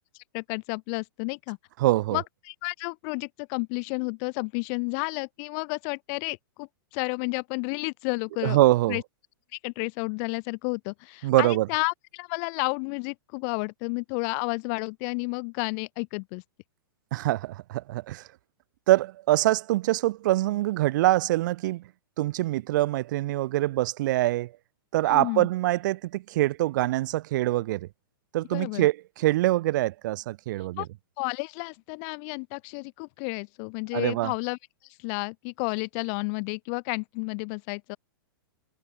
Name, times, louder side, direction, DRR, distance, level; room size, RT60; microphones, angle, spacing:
voice 1, 0.3-1.6 2.1-8.6 8.9-9.0 9.6-16.4 25.1-25.5 28.5-28.9 30.8-30.9 31.2-34.6 35.0-38.0, left 40 dB or more, 40° left, 6.2 m, -31 dB
voice 2, 1.8-2.2 8.4-9.0 11.2-11.7 17.1-18.2 18.9-21.8 22.2-24.5 24.9-27.9 28.3-30.9 33.9-34.3, right 16 dB, 55° right, 3.0 m, -24 dB
hypercardioid pair, 140°, 12 cm